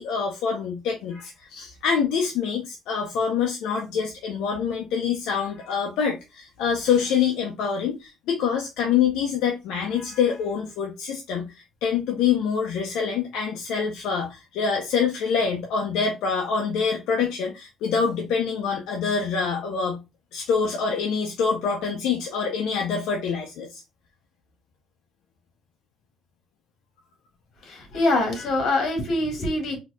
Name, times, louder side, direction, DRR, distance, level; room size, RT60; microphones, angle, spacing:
voice 1, 0.0-20.0 20.3-23.8, left 6 dB, 80° left, 0.6 m, -25 dB
voice 2, 27.6-29.8, left 2 dB, 60° left, 1.7 m, -24 dB
4.1 x 2.8 x 2.3 m
cardioid pair, 105°, 0 cm